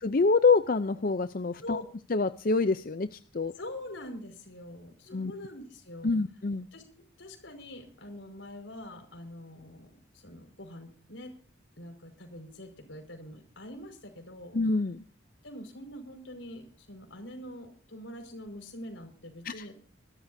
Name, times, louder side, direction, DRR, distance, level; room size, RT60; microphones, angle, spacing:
voice 1, 0.0-1.8 2.1-3.5 5.1-5.3 6.0-6.7 14.5-15.0 19.4-19.7, left 4 dB, 45° left, 12 dB, 0.5 m, -26 dB
voice 2, 3.6-6.2 6.7-6.9 7.2-11.3 11.8-14.6 15.4-19.7, left 1 dB, 80° left, 5 dB, 5.2 m, -44 dB
24.5 x 13.0 x 2.7 m, 0.41 s
head